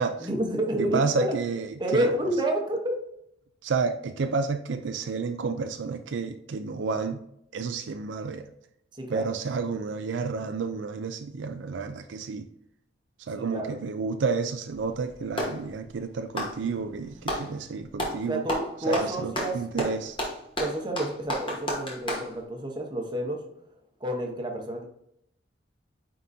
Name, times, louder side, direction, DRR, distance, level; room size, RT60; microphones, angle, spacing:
voice 1, 0.2-1.3 1.8-3.0 9.0-9.3 13.4-13.7 18.3-19.6 20.6-23.4 24.0-24.9, right 1 dB, 25° right, 2 dB, 0.9 m, -29 dB
voice 2, 0.8-2.3 3.6-7.2 7.5-8.5 9.1-12.5 13.2-18.5 18.9-20.2, right 4 dB, 70° right, 7 dB, 0.4 m, -30 dB
Clapping, 14.7-15.6 16.2-17.5 18.0-18.2 18.5-22.3, equal, 25° left, 1.2 m, -31 dB
9.2 x 3.8 x 2.7 m, 0.75 s
head